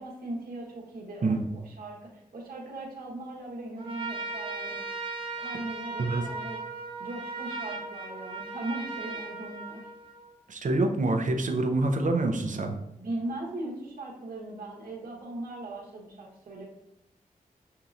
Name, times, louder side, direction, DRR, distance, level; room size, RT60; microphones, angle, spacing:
voice 1, 0.0-4.8 5.4-6.6 7.0-9.9 13.0-16.6, right 2 dB, 85° right, -3 dB, 1.1 m, -39 dB
Trumpet, 3.8-10.3, right 3 dB, 35° right, 1.2 m, -37 dB
voice 2, 10.5-12.8, right 2 dB, 60° right, 4 dB, 0.7 m, -26 dB
6.8 x 2.8 x 2.5 m, 0.82 s
cardioid pair, 55°, 15 cm